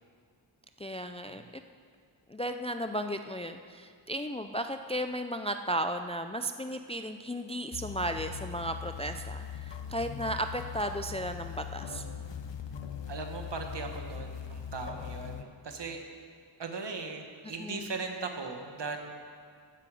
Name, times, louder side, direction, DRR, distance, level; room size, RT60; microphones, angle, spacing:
voice 1, 0.8-1.4 2.3-12.0 17.6-17.9, right 1 dB, 15° left, 7 dB, 0.3 m, -35 dB
sound 1, 7.7-15.4, left 7 dB, 65° left, 0.8 m, -40 dB
voice 2, 13.1-16.0 16.6-19.1, right 4 dB, 60° right, 4 dB, 1.4 m, -38 dB
14.5 x 9.8 x 4.9 m, 2.2 s
wide cardioid pair, 110°, 46 cm